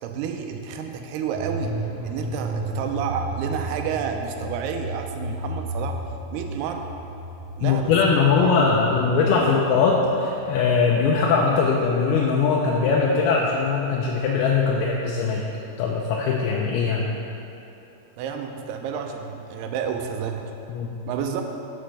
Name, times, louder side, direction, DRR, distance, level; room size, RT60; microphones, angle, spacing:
voice 1, 0.0-6.0 6.3-6.9 7.6-8.6 9.3-9.6 18.2-20.5 21.1-21.4, right 7 dB, 85° right, 5 dB, 2.6 m, -30 dB
sound 1, 1.3-11.2 11.5-11.6, right 2 dB, 40° left, 0.3 m, -33 dB
voice 2, 7.6-15.4 15.8-17.1 20.7-20.9, left 5 dB, 85° left, -2 dB, 2.5 m, -21 dB
12.5 x 6.2 x 3.3 m, 2.9 s
omnidirectional pair, 4.5 m